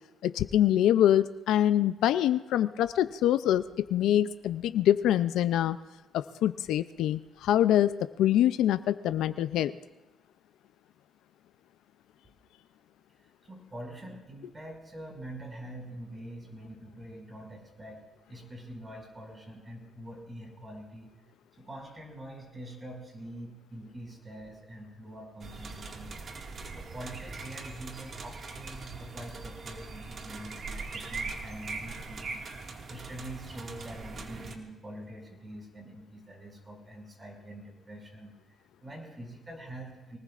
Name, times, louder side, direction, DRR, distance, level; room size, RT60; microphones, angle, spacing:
voice 1, 0.2-5.8 6.1-7.9 8.2-9.8, left 11 dB, 85° left, 12 dB, 0.4 m, -25 dB
voice 2, 13.4-18.0 18.3-21.1 21.5-26.1 26.7-32.4 32.9-38.4 38.8-40.2, right 1 dB, 25° right, 1 dB, 5.6 m, -44 dB
sound 1, 25.4-34.6, right 4 dB, 50° right, 1.9 m, -41 dB
24.0 x 19.5 x 2.5 m, 1.1 s
cardioid pair, 90°, 0 cm